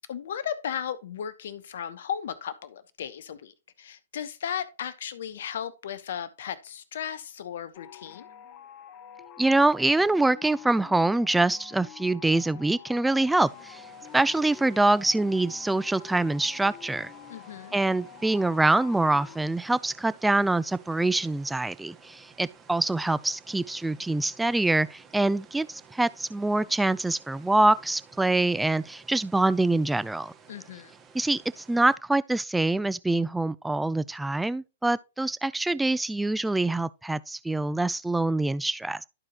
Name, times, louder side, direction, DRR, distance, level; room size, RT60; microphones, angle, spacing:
voice 1, 0.1-8.3 17.3-17.7 30.5-30.9, left 8 dB, 65° left, 1.0 m, -35 dB
sound 1, 7.7-19.4, left 9 dB, 35° left, 1.1 m, -47 dB
voice 2, 9.4-13.8 14.1-17.1 17.7-30.3 31.1-39.0, right 2 dB, 5° right, 0.4 m, -25 dB
sound 2, 13.4-32.0, right 6 dB, 25° right, 1.8 m, -54 dB
12.5 x 4.8 x 2.9 m
hypercardioid pair, 115°, 0 cm